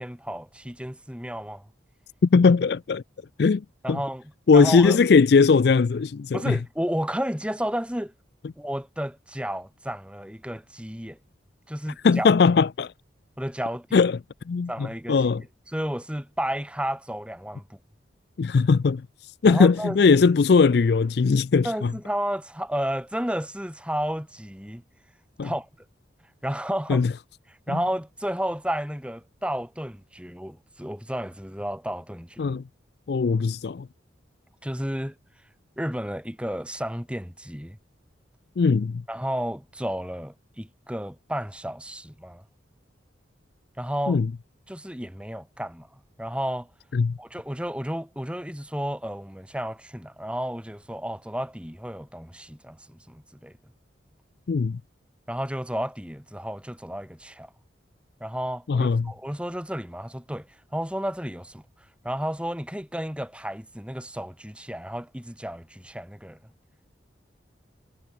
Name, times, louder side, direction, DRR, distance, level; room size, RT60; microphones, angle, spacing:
voice 1, 0.0-1.6 3.8-4.2 4.5-5.0 6.3-8.1 8.6-11.2 11.7-12.3 13.4-14.0 14.7-15.4 15.7-17.6 19.4-20.0 21.6-24.8 25.4-25.7 26.4-27.0 27.7-32.6 34.6-35.1 35.8-37.8 39.1-42.4 43.8-44.2 44.7-45.9 46.2-46.7 47.2-53.5 55.3-57.5 58.2-60.5 60.7-61.6 62.0-66.4, equal, 5° right, 4.7 m, -32 dB
voice 2, 2.2-3.0 3.4-4.0 4.5-6.6 12.0-12.9 13.9-14.2 14.5-15.4 18.4-19.1 19.4-21.9 25.4-25.5 26.9-27.1 27.7-27.8 32.4-32.6 33.1-33.9 38.6-39.0 44.1-44.3 46.9-47.2 54.5-54.8 58.7-59.1, left 5 dB, 55° left, 0.4 m, -20 dB
head